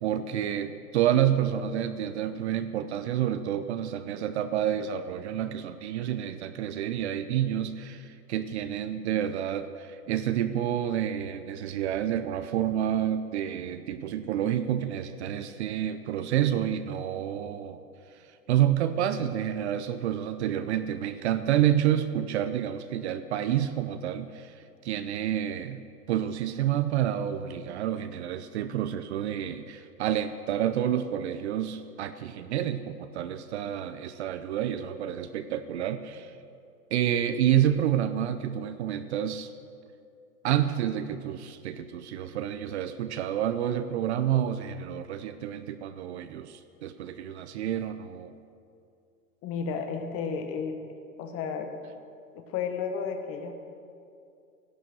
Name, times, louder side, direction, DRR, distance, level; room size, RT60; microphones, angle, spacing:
voice 1, 0.0-17.8 18.5-24.5 24.8-36.3 36.9-39.5 40.4-48.4, right 10 dB, 45° right, 11 dB, 0.7 m, -29 dB
voice 2, 49.4-50.8 51.2-51.7 52.3-53.5, left 6 dB, 30° left, 6 dB, 1.4 m, -32 dB
14.5 x 11.0 x 6.3 m, 2.5 s
hypercardioid pair, 115°, 47 cm